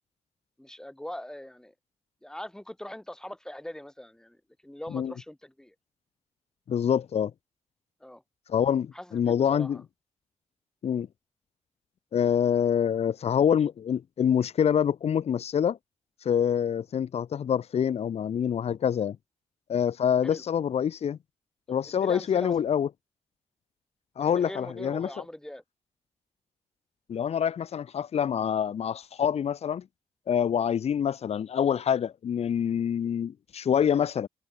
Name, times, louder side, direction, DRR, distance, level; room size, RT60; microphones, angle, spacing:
voice 1, 0.6-1.7 2.2-4.4 4.6-5.7 8.0-8.2 8.9-9.8 20.2-20.4 21.8-22.5 24.2-25.6, left 1 dB, 5° left, 4.8 m, -41 dB
voice 2, 6.7-7.3 8.5-9.8 10.8-11.1 12.1-15.8 16.2-19.2 19.7-21.2 21.7-22.9 24.2-25.2 27.1-29.8 30.3-34.3, left 8 dB, 65° left, 2.4 m, -26 dB
wide cardioid pair, 155°, 11 cm